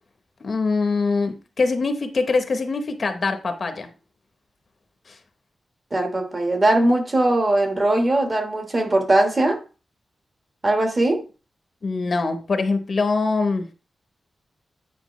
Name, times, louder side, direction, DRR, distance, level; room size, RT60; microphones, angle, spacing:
voice 1, 0.4-3.9 5.1-5.2 11.8-13.7, left 3 dB, 45° left, 0.8 m, -23 dB
voice 2, 5.9-9.6 10.6-11.2, right 1 dB, 30° right, 1.2 m, -20 dB
9.2 x 4.8 x 3.1 m
wide cardioid pair, 170°, 0 cm